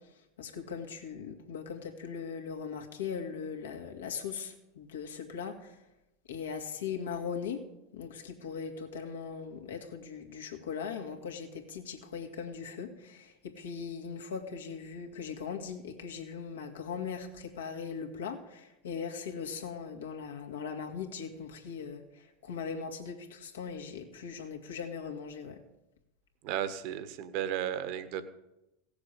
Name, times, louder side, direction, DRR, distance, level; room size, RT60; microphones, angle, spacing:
voice 1, 0.4-5.8 6.3-7.6 7.9-25.6, left 6 dB, 80° left, 2 dB, 2.1 m, -39 dB
voice 2, 26.4-28.2, right 10 dB, 55° right, 11 dB, 1.5 m, -34 dB
17.0 x 7.2 x 8.3 m, 0.92 s
hypercardioid pair, 90°, 0 cm